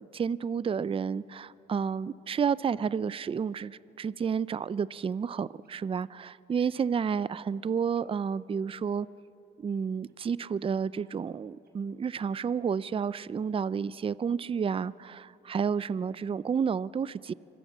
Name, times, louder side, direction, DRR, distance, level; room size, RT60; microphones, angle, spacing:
voice 1, 0.0-9.1 9.6-17.3, right 6 dB, 30° right, 19 dB, 0.4 m, -31 dB
sound 1, 5.6-5.8 6.5-7.2 7.9-8.6 10.1-10.4 10.9-12.0 12.5-12.9, right 5 dB, 50° right, 6.6 m, -67 dB
25.5 x 21.5 x 7.4 m, 2.8 s
cardioid pair, 90°, 20 cm